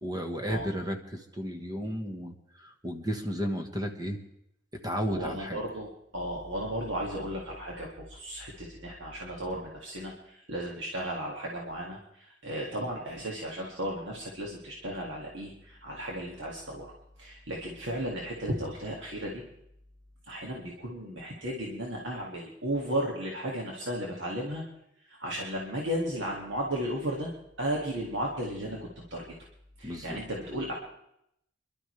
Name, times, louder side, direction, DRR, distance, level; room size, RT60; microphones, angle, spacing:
voice 1, 0.0-4.2 4.8-5.6 29.8-30.2, equal, 20° right, 4 dB, 1.3 m, -33 dB
voice 2, 5.0-16.9 17.2-19.4 20.3-24.6 25.0-27.3 27.6-29.3 29.8-30.7, right 1 dB, 85° right, -2 dB, 2.1 m, -35 dB
26.0 x 12.0 x 3.3 m, 0.78 s
head